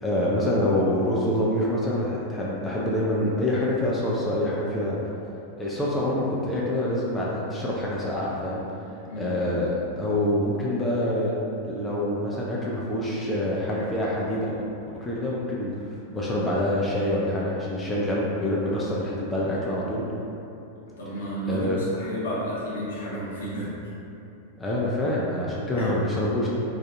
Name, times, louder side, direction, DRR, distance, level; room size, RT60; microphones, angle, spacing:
voice 1, 0.0-5.0 5.6-8.6 9.1-11.3 11.6-14.5 15.0-20.0 21.5-21.8 24.6-26.5, left 1 dB, 10° left, -6 dB, 0.3 m, -26 dB
voice 2, 9.0-9.3 20.9-23.8 25.8-25.9, equal, 65° left, -7 dB, 0.7 m, -32 dB
2.5 x 2.3 x 2.5 m, 2.8 s
figure-of-eight pair, 90°, 0 cm